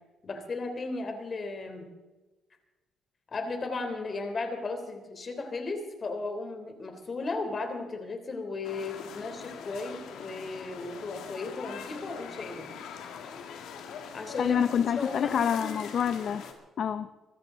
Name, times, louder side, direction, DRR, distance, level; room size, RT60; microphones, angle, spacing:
voice 1, 0.2-1.9 3.3-12.7 14.1-15.7, left 3 dB, 40° left, 5 dB, 3.7 m, -35 dB
sound 1, 8.6-16.5, left 7 dB, 85° left, 2.1 m, -43 dB
voice 2, 14.4-16.4 16.8-17.1, left 8 dB, 60° left, 10 dB, 0.7 m, -27 dB
24.5 x 14.0 x 4.0 m, 1.2 s
cardioid pair, 90°, 0 cm